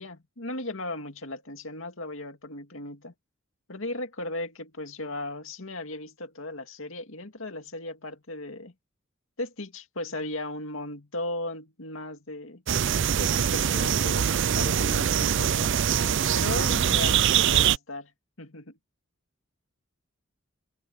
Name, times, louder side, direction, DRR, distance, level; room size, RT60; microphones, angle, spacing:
voice 1, 0.0-3.1 3.7-8.7 9.4-12.6 13.2-15.7 16.3-18.1 18.4-18.8, left 2 dB, 70° left, 2.3 m, -36 dB
sound 1, 12.7-17.8, right 9 dB, 60° right, 0.5 m, -23 dB
head